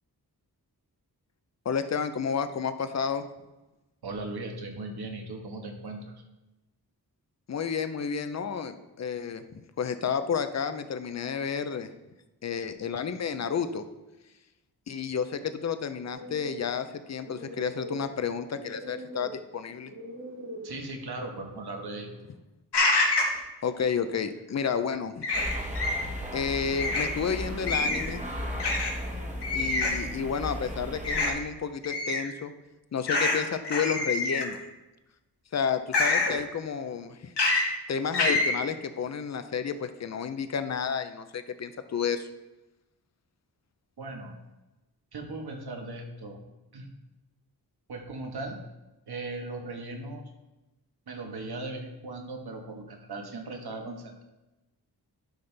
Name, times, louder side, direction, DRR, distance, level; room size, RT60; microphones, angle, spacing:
voice 1, 1.7-3.2 7.5-11.9 12.4-13.8 14.9-19.9 23.6-25.3 26.3-28.2 29.5-32.5 32.9-34.6 35.5-37.3 37.9-42.3, left 6 dB, 45° left, 10 dB, 0.5 m, -31 dB
voice 2, 4.0-6.0 20.6-22.1 44.0-44.3 45.1-46.4 46.7-46.9 47.9-48.6 49.1-50.2 51.1-54.2, right 2 dB, 75° right, 2 dB, 1.4 m, -38 dB
sound 1, 16.1-22.3, right 1 dB, 55° right, 2.0 m, -44 dB
sound 2, 22.7-23.4 25.2-26.0 26.8-27.1 27.7-28.1 28.6-28.9 29.4-30.0 31.0-31.3 31.8-32.2 33.1-33.4 33.6-34.5 35.9-36.3 37.4-37.7 38.1-38.5, left 2 dB, 90° left, 1.7 m, -26 dB
sound 3, 25.3-31.3, equal, 20° right, 1.1 m, -35 dB
11.5 x 5.6 x 3.3 m, 1.0 s
wide cardioid pair, 170°, 39 cm